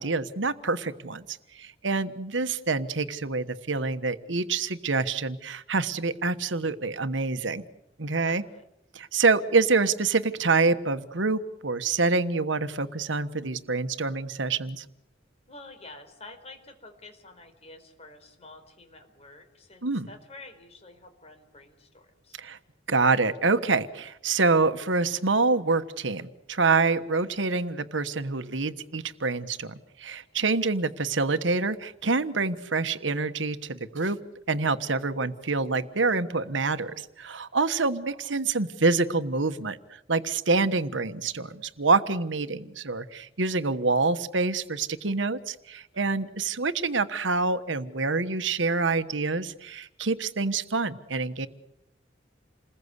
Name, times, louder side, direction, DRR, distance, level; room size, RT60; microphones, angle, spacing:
voice 1, 0.0-7.6 8.0-8.4 8.9-14.8 19.8-20.1 22.4-22.6 22.9-34.2 34.5-51.5, right 3 dB, 75° right, 11 dB, 1.3 m, -26 dB
voice 2, 8.2-8.6 15.5-22.4 37.8-37.9 45.9-46.3, left 2 dB, 35° left, 6 dB, 4.6 m, -49 dB
29.0 x 21.0 x 8.2 m, 0.83 s
head